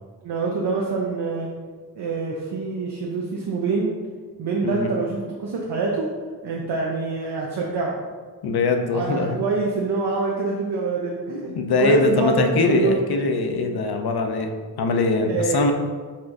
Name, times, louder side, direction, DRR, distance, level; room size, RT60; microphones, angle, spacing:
voice 1, 0.2-1.5 2.0-4.0 4.4-6.1 6.4-8.0 8.9-13.0 15.3-15.6, right 4 dB, 80° right, -2 dB, 0.6 m, -25 dB
voice 2, 8.4-9.4 11.3-14.5 14.8-15.7, left 3 dB, 70° left, 5 dB, 0.5 m, -22 dB
4.2 x 2.5 x 4.5 m, 1.5 s
wide cardioid pair, 115°, 40 cm